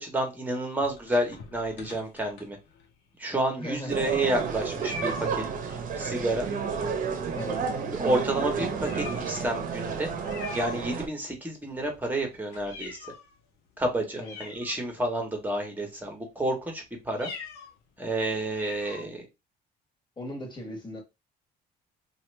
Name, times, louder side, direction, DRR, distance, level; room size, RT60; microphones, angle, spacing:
voice 1, 0.0-2.6 3.2-5.4 6.0-6.5 8.0-10.1 10.5-13.0 13.8-17.3 18.0-19.2, right 1 dB, 10° right, 1.3 m, -30 dB
sound 1, 0.8-2.9 3.5-3.6 3.8-3.9 4.8-5.4 6.7-7.2 7.5-7.7 8.1-8.2 8.8-9.5 10.2-11.3 11.7-13.3 13.8-13.9 14.2-15.2 15.8-16.1 17.1-17.7 18.0-18.1 18.5-19.0, left 4 dB, 80° left, 0.9 m, -43 dB
voice 2, 3.6-4.4 7.3-7.7 14.1-14.4 20.2-21.0, equal, 25° left, 1.5 m, -38 dB
sound 2, 3.9-11.1, right 6 dB, 50° right, 0.8 m, -31 dB
2.8 x 2.5 x 3.3 m
cardioid pair, 110°, 17 cm